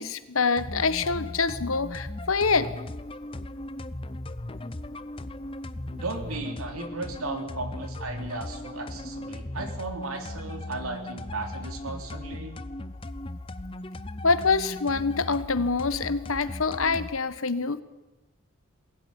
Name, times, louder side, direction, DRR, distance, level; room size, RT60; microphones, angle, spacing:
voice 1, 0.0-2.7 14.2-17.8, left 4 dB, 75° left, 13 dB, 1.3 m, -25 dB
sound 1, 0.6-17.2, left 1 dB, 25° left, 0.8 m, -37 dB
voice 2, 5.9-12.6, right 2 dB, 90° right, 5 dB, 3.6 m, -36 dB
21.5 x 16.0 x 9.9 m, 1.1 s
head